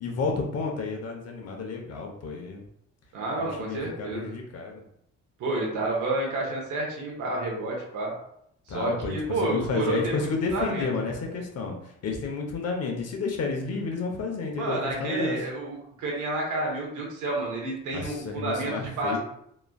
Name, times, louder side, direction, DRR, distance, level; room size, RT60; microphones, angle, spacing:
voice 1, 0.0-2.6 3.6-4.8 8.7-11.8 12.0-15.4 17.9-19.2, left 4 dB, 55° left, 1 dB, 0.7 m, -31 dB
voice 2, 3.1-4.3 5.4-8.1 8.7-10.9 14.6-19.2, right 2 dB, 75° right, -1 dB, 0.8 m, -30 dB
3.1 x 2.4 x 2.2 m, 0.73 s
cardioid pair, 90°, 30 cm